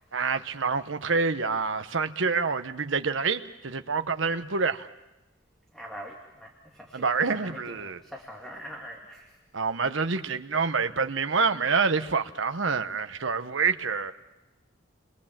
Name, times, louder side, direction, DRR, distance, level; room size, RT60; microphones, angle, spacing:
voice 1, 0.1-4.9 6.9-8.0 9.5-14.1, right 4 dB, 70° right, 8 dB, 1.0 m, -27 dB
voice 2, 5.7-9.3, equal, ahead, -1 dB, 2.3 m, -43 dB
29.0 x 22.0 x 7.4 m, 1.0 s
head